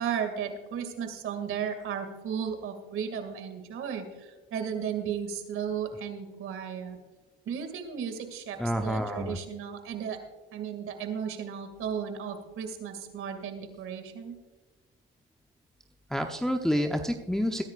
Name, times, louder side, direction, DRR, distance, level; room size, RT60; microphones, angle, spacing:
voice 1, 0.0-7.0 7.5-10.2 10.5-14.4, right 7 dB, 45° right, 7 dB, 2.4 m, -35 dB
voice 2, 8.6-9.4 16.1-17.6, equal, ahead, 4 dB, 0.8 m, -28 dB
21.5 x 10.5 x 2.5 m, 1.3 s
supercardioid pair, 95°, 29 cm